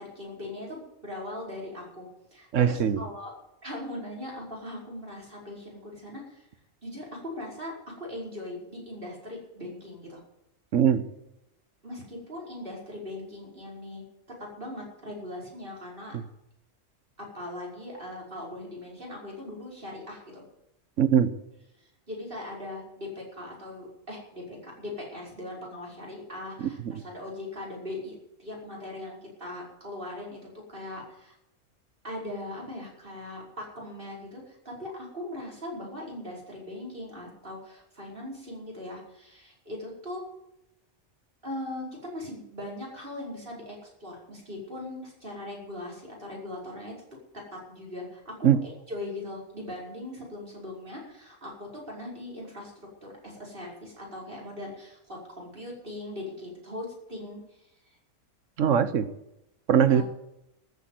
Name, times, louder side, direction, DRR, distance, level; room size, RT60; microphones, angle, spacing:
voice 1, 0.0-3.4 3.6-6.5 6.8-10.2 11.8-14.0 14.4-16.2 17.2-20.4 21.8-28.1 28.4-31.4 32.0-40.2 41.4-46.9 47.5-52.7 53.0-58.0 59.9-60.0, left 1 dB, 45° right, -3 dB, 5.4 m, -40 dB
voice 2, 2.5-3.0 10.7-11.0 16.1-16.2 21.0-21.3 26.6-26.7 48.4-48.6 58.6-59.1 59.7-60.0, right 8 dB, 70° right, 13 dB, 1.3 m, -21 dB
14.0 x 8.5 x 9.3 m, 0.85 s
omnidirectional pair, 1.3 m